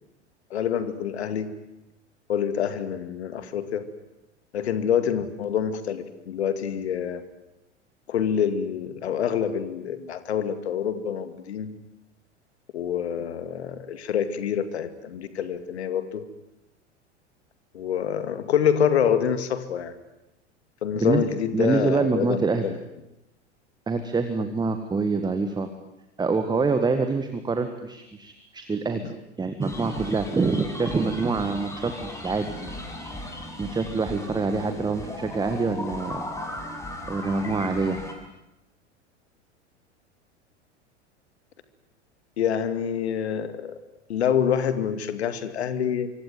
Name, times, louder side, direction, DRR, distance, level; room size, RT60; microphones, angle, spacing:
voice 1, 0.5-1.5 2.3-3.8 4.5-7.2 8.1-11.7 12.7-16.2 17.7-19.9 20.8-22.8 42.4-43.8 44.1-46.1, left 8 dB, 65° left, 11 dB, 2.4 m, -26 dB
voice 2, 21.5-22.7 23.9-25.7 26.2-29.1 29.4-32.7 33.6-36.2 37.1-38.0, right 4 dB, 10° right, 8 dB, 1.8 m, -26 dB
sound 1, 29.6-38.1, left 1 dB, 10° left, 6.2 m, -37 dB
25.0 x 25.0 x 9.5 m, 0.89 s
figure-of-eight pair, 90°, 36 cm